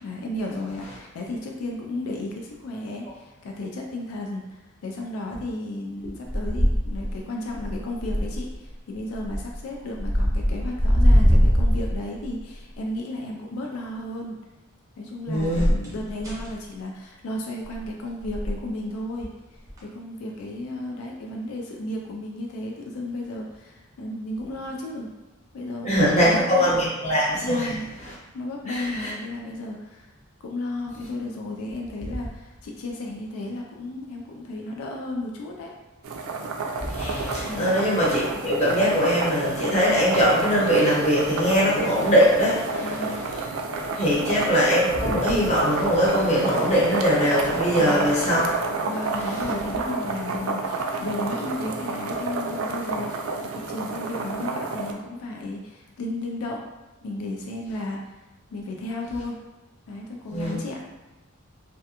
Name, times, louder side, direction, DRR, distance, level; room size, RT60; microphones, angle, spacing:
voice 1, 0.0-14.4 15.0-19.3 19.8-25.1 25.5-26.8 27.4-27.9 28.3-30.1 30.4-35.7 37.4-37.8 42.8-43.2 47.7-48.1 48.9-56.6 57.0-58.0 58.5-59.4 59.9-60.8, left 1 dB, 90° left, 0 dB, 0.4 m, -33 dB
sound 1, 6.3-7.2 7.5-8.5 9.1-9.6 10.0-12.4 15.4-16.5 17.6-17.9 18.2-18.6 19.7-19.8, equal, 15° right, 0.5 m, -22 dB
voice 2, 15.3-15.7 25.8-27.7 28.7-29.1 36.8-43.4 43.9-48.6 60.3-60.6, equal, 30° left, -7 dB, 0.8 m, -22 dB
sound 2, 36.0-54.9, right 3 dB, 70° right, 0.3 m, -30 dB
2.4 x 2.2 x 2.8 m, 1.1 s
head